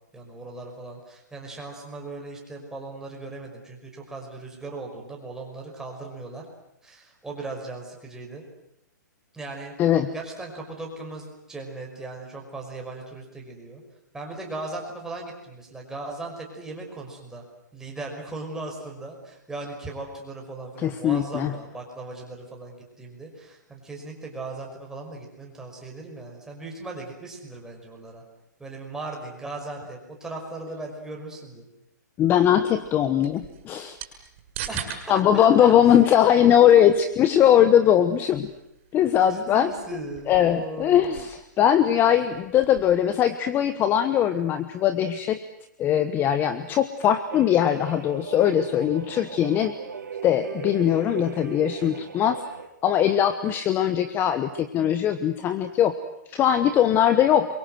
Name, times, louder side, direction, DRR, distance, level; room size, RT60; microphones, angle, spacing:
voice 1, 0.1-6.4 6.8-8.4 9.3-9.7 10.1-13.8 14.1-17.4 17.7-28.2 28.6-31.7 34.7-35.7 39.1-41.1, right 2 dB, 5° right, 0 dB, 5.6 m, -38 dB
voice 2, 20.8-21.5 32.2-34.0 35.1-38.5 38.9-39.7 40.3-45.4 45.8-49.7 50.2-52.4 52.8-55.9 56.3-57.5, left 10 dB, 20° left, 11 dB, 1.1 m, -20 dB
sound 1, 32.3-43.0, right 9 dB, 40° right, 6.2 m, -44 dB
sound 2, 47.3-52.7, right 6 dB, 85° right, 4.4 m, -37 dB
27.5 x 23.5 x 7.9 m, 0.81 s
hypercardioid pair, 145°, 10 cm